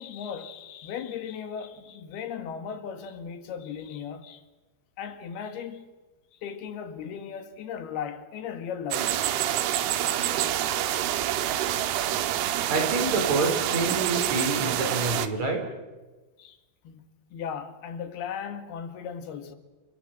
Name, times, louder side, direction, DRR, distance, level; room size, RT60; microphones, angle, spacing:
voice 1, 0.0-4.4 5.0-5.9 6.3-9.2 16.4-16.6 16.8-19.6, left 7 dB, 80° left, 3.8 m, -37 dB
sound 1, 8.9-15.3, right 12 dB, 90° right, 3.1 m, -27 dB
voice 2, 12.7-15.6, right 3 dB, 45° right, 5.9 m, -27 dB
28.5 x 23.5 x 7.6 m
omnidirectional pair, 4.4 m